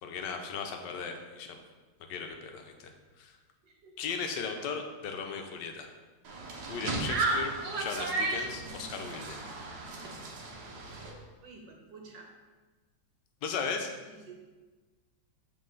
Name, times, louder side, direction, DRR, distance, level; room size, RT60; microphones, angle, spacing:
voice 1, 0.0-1.6 2.1-3.4 4.0-5.9 6.7-9.4 13.4-13.9, left 5 dB, 75° left, 4 dB, 1.3 m, -37 dB
voice 2, 3.6-4.0 11.4-12.3 14.1-14.3, right 4 dB, 90° right, 1 dB, 1.7 m, -50 dB
sound 1, 6.2-11.1, right 3 dB, 65° right, 1.5 m, -34 dB
7.4 x 3.8 x 3.9 m, 1.3 s
omnidirectional pair, 1.9 m